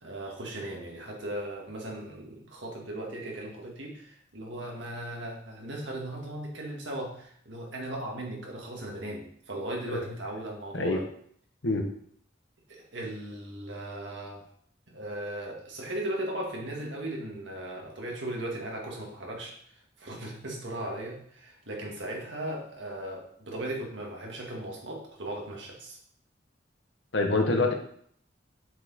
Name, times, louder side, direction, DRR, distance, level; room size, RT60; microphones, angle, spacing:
voice 1, 0.0-11.1 12.7-14.4 14.9-26.0, right 1 dB, 70° right, -1 dB, 1.8 m, -37 dB
voice 2, 27.1-27.7, left 2 dB, 65° left, 4 dB, 1.1 m, -25 dB
6.9 x 4.6 x 4.1 m, 0.62 s
head